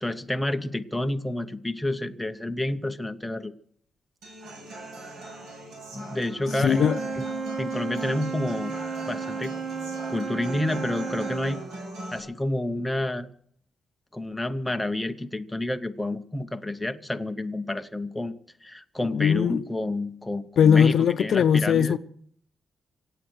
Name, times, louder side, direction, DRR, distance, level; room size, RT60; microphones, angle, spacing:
voice 1, 0.0-3.5 5.9-6.9 7.2-7.3 7.6-8.8 9.1-9.5 10.1-11.6 12.1-13.3 14.1-18.3 18.6-22.0, left 1 dB, 5° left, 0.7 m, -29 dB
Human voice / Acoustic guitar, 4.2-12.2, right 1 dB, 80° right, 6.8 m, -40 dB
voice 2, 6.6-7.0 19.1-19.6 20.6-22.0, left 7 dB, 65° left, 0.5 m, -19 dB
Wind instrument woodwind instrument, 6.6-11.6, right 5 dB, 40° right, 0.9 m, -33 dB
25.0 x 8.5 x 6.3 m
wide cardioid pair, 155°, 0 cm